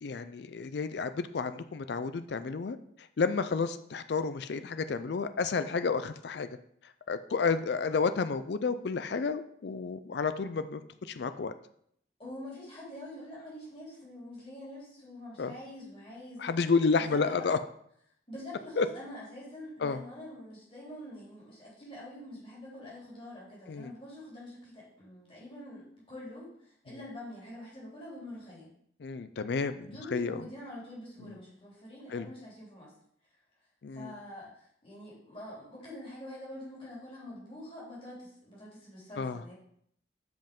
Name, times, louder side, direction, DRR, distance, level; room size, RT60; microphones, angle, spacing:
voice 1, 0.0-2.8 3.2-6.5 7.1-10.8 11.1-11.5 15.4-15.5 16.4-17.6 18.8-18.9 19.8-20.0 23.7-23.9 29.0-30.4 32.1-32.3 33.8-34.1 39.2-39.4, left 4 dB, 65° left, 11 dB, 0.4 m, -31 dB
voice 2, 12.2-16.5 17.0-17.4 18.3-28.7 29.8-32.9 33.9-39.5, left 1 dB, 30° left, -6 dB, 3.4 m, -45 dB
7.8 x 5.3 x 5.3 m, 0.69 s
head